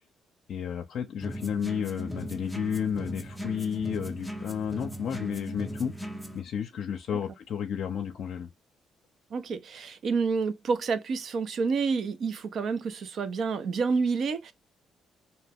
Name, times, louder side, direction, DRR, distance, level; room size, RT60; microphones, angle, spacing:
voice 1, 0.5-5.9 6.3-8.5, left 8 dB, 70° left, 0.5 m, -32 dB
sound 1, 1.2-6.4, right 1 dB, ahead, 0.5 m, -38 dB
voice 2, 9.3-14.5, right 5 dB, 60° right, 0.5 m, -29 dB
2.7 x 2.2 x 3.3 m
cardioid pair, 90°, 0 cm